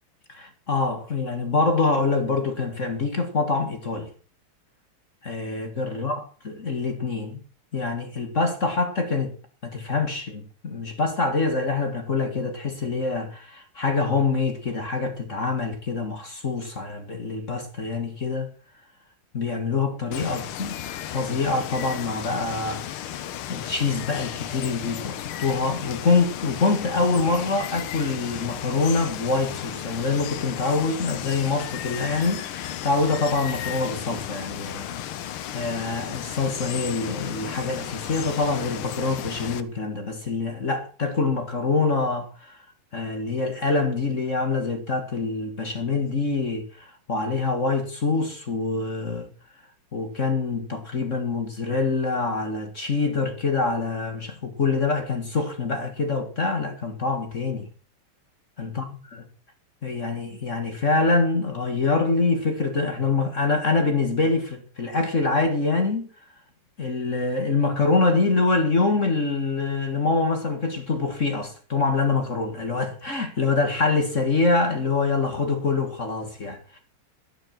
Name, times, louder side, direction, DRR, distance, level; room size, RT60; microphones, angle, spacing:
voice 1, 0.3-4.1 5.2-7.4 7.7-9.3 9.6-18.5 19.3-20.7 21.1-22.9 23.1-23.2 23.5-35.0 35.5-42.6 42.9-49.3 49.9-57.7 58.6-59.3 59.8-66.1 66.8-76.8, left 3 dB, 35° left, 2.1 m, -25 dB
Water, 20.1-39.6, left 11 dB, 80° left, 1.7 m, -34 dB
13.0 x 10.5 x 6.0 m
omnidirectional pair, 2.4 m